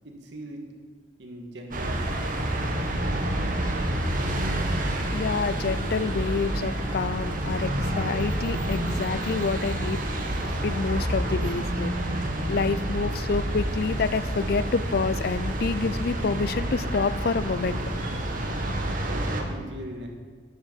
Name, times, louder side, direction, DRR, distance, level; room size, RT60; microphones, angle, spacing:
voice 1, 0.0-0.6 1.2-2.4 19.0-20.1, right 1 dB, 75° right, 2 dB, 1.8 m, -40 dB
sound 1, 1.7-19.4, right 1 dB, 50° right, 1.4 m, -28 dB
voice 2, 5.1-10.0 10.6-17.8, left 4 dB, 55° left, 15 dB, 0.4 m, -28 dB
11.0 x 6.5 x 7.4 m, 1.5 s
head